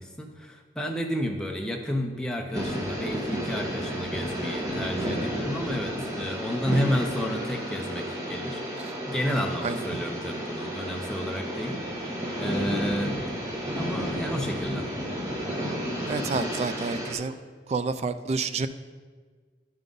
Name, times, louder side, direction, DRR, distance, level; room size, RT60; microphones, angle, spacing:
voice 1, 0.0-8.6 9.1-12.1 12.4-13.2 13.8-14.9, equal, 5° left, 2 dB, 0.6 m, -31 dB
sound 1, 2.5-17.1, equal, 20° right, 1.2 m, -32 dB
voice 2, 9.6-10.0 16.1-17.3 17.7-18.7, right 4 dB, 35° right, 12 dB, 0.3 m, -29 dB
11.0 x 3.7 x 5.3 m, 1.5 s
head